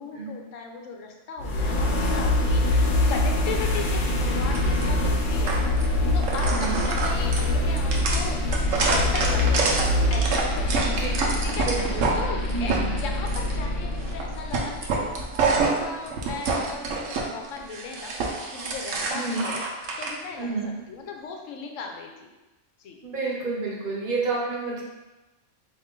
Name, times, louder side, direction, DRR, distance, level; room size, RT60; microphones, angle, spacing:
voice 1, 0.0-10.8 11.4-15.1 15.5-19.6 20.0-20.6 20.9-22.3 22.8-23.0, left 4 dB, 80° left, 3 dB, 1.0 m, -37 dB
sound 1, 1.4-15.3, left 1 dB, 55° left, 0.6 m, -24 dB
sound 2, 4.5-4.8 5.5-5.9 6.2-12.1 12.5-13.5 14.0-14.2 14.5-17.2 17.6-20.1, right 4 dB, 80° right, 1.1 m, -27 dB
voice 2, 6.5-6.8 10.8-11.1 11.6-12.2 12.5-13.0 19.1-19.5 20.4-20.7 23.0-24.8, right 3 dB, 50° right, -3 dB, 0.9 m, -29 dB
4.2 x 3.0 x 3.7 m, 1.1 s
omnidirectional pair, 1.3 m